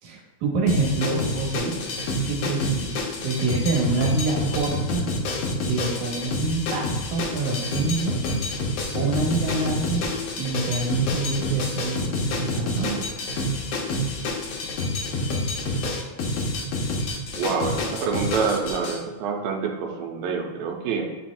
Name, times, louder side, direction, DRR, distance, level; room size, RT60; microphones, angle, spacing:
voice 1, 0.0-1.8 2.2-5.1 5.7-8.2 8.9-10.1 10.4-13.1, right 3 dB, 65° right, -2 dB, 2.4 m, -26 dB
sound 1, 0.7-19.0, left 2 dB, 85° left, 1.4 m, -28 dB
voice 2, 17.3-21.2, right 5 dB, 85° right, 1 dB, 2.6 m, -27 dB
10.5 x 4.3 x 2.4 m, 1.2 s
omnidirectional pair, 4.2 m